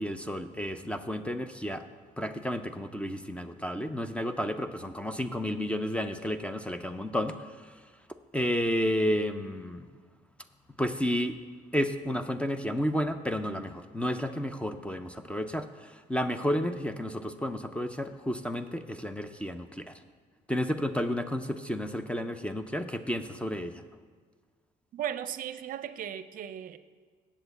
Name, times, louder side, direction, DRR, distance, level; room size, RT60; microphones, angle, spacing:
voice 1, 0.0-1.8 2.2-7.7 8.3-9.9 10.8-11.4 11.7-19.9 20.5-23.8, equal, 5° left, 9 dB, 0.5 m, -31 dB
voice 2, 24.9-26.8, right 10 dB, 55° right, 13 dB, 0.6 m, -36 dB
8.0 x 7.3 x 7.9 m, 1.5 s
cardioid pair, 110°, 17 cm